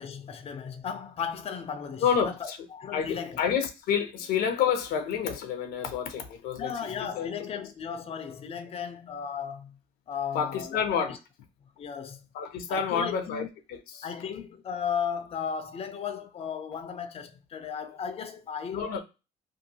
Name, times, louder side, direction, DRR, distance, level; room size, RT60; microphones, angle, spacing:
voice 1, 0.0-3.4 6.6-9.8 10.1-11.2 11.8-12.2 12.7-13.5 14.0-18.9, left 7 dB, 40° left, 0.5 m, -35 dB
voice 2, 2.0-2.6 2.9-7.3 10.3-11.1 12.3-14.1 18.7-19.0, left 7 dB, 75° left, 0.6 m, -29 dB
2.7 x 2.4 x 2.8 m
supercardioid pair, 75°, 16 cm